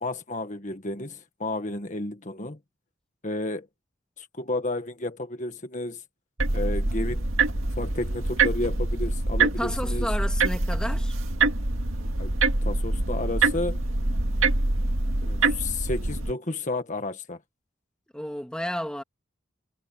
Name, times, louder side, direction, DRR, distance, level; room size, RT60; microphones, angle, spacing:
voice 1, 0.0-2.6 3.2-3.7 4.2-6.0 6.5-7.2 7.8-10.1 12.2-12.4 12.7-13.8 15.2-17.4, left 2 dB, 40° left, 1.6 m, -32 dB
sound 1, 6.4-16.3, right 3 dB, 85° right, 2.0 m, -25 dB
voice 2, 9.6-11.2 18.1-19.0, equal, 5° left, 1.9 m, -32 dB
head